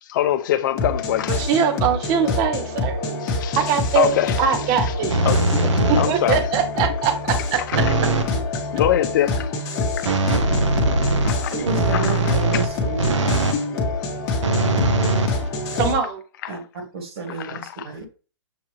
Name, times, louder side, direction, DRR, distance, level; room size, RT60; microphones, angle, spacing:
voice 1, 0.1-1.4 3.2-3.7 3.9-4.5 4.8-4.9 5.3-6.5 7.7-7.8 8.7-9.5 10.0-10.4 11.2-12.6 16.4-16.6 17.3-18.1, left 12 dB, 45° left, 0.5 m, -25 dB
sound 1, 0.8-15.9, left 3 dB, 20° left, 0.9 m, -26 dB
voice 2, 1.4-3.0 3.6-5.2 5.9-7.6 15.7-16.2, right 7 dB, 25° right, 0.6 m, -22 dB
sound 2, 5.1-6.3 7.7-8.4 10.0-13.6 14.4-15.9, right 2 dB, 85° right, 0.8 m, -21 dB
voice 3, 11.5-13.2 16.5-18.1, right 2 dB, 60° right, 1.6 m, -30 dB
6.8 x 2.3 x 3.0 m
hypercardioid pair, 150°, 15 cm